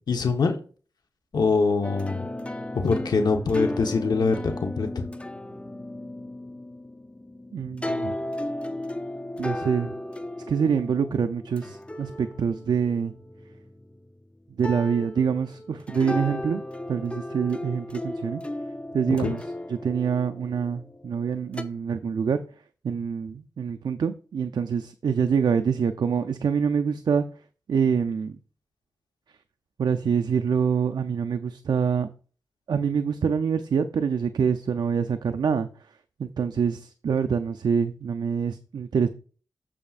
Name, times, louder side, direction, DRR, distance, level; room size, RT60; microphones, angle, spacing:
voice 1, 0.1-0.6 1.3-2.3 2.7-5.1 19.1-19.4, left 4 dB, 70° left, 4 dB, 1.0 m, -24 dB
sound 1, 1.8-14.1 14.6-21.6, left 1 dB, 15° left, 0.6 m, -35 dB
voice 2, 7.5-8.2 9.4-9.9 10.5-12.1 12.4-13.1 14.6-16.6 16.9-18.4 18.9-19.4 19.7-22.4 22.8-27.2 27.7-28.4 29.8-32.1 32.7-35.7 36.2-39.1, right 6 dB, 75° right, 8 dB, 0.5 m, -25 dB
8.5 x 7.0 x 2.5 m, 0.39 s
cardioid pair, 60°, 7 cm